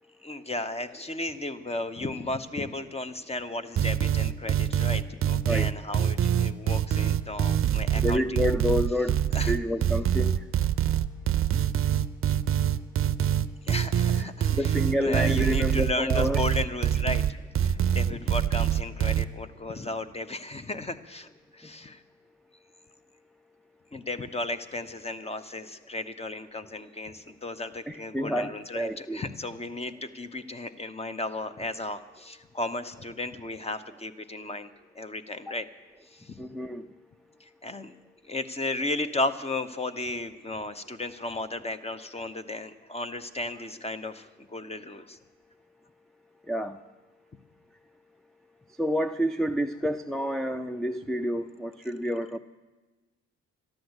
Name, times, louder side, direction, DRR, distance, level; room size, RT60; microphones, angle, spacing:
voice 1, 0.2-8.4 9.3-9.6 13.6-17.2 17.6-21.3 21.5-22.0 23.9-34.7 35.0-35.7 36.1-36.4 37.4-37.9 38.3-45.2, left 2 dB, 20° left, 11 dB, 0.8 m, -34 dB
sound 1, 3.8-19.2, right 10 dB, 45° right, 0.6 m, -25 dB
voice 2, 8.0-10.4 14.2-16.4 27.9-29.2 35.5-35.6 36.4-36.8 46.5-46.8 48.8-52.4, equal, ahead, 11 dB, 0.4 m, -29 dB
13.5 x 10.5 x 8.1 m, 1.2 s
cardioid pair, 90°, 30 cm